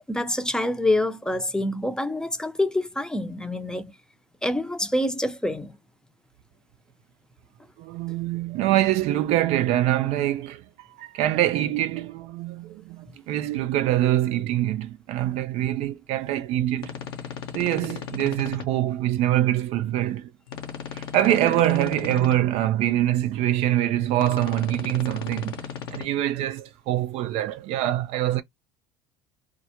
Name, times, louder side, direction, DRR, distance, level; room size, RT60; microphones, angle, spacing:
voice 1, 0.1-3.9 4.4-5.8, left 1 dB, 5° left, 0.6 m, -26 dB
voice 2, 7.8-10.6 11.0-16.9 17.5-20.3 20.9-25.5 25.9-28.4, right 13 dB, 60° right, 0.4 m, -24 dB
sound 1, 16.8-18.6 20.5-22.3 24.2-26.0, left 7 dB, 85° left, 0.8 m, -36 dB
2.1 x 2.0 x 2.9 m
hypercardioid pair, 75°, 12 cm